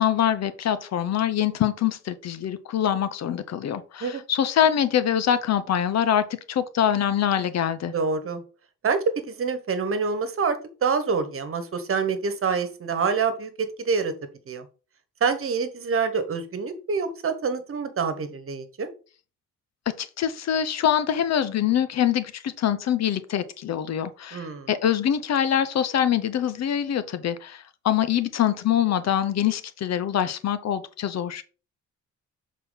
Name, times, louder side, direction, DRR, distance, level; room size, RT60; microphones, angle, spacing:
voice 1, 0.0-7.9 20.0-31.4, left 10 dB, 60° left, 0.8 m, -24 dB
voice 2, 7.9-8.4 8.8-14.1 14.5-14.6 15.2-18.9 24.3-24.7, right 5 dB, 45° right, 1.4 m, -26 dB
7.0 x 4.2 x 4.1 m
cardioid pair, 90°, 30 cm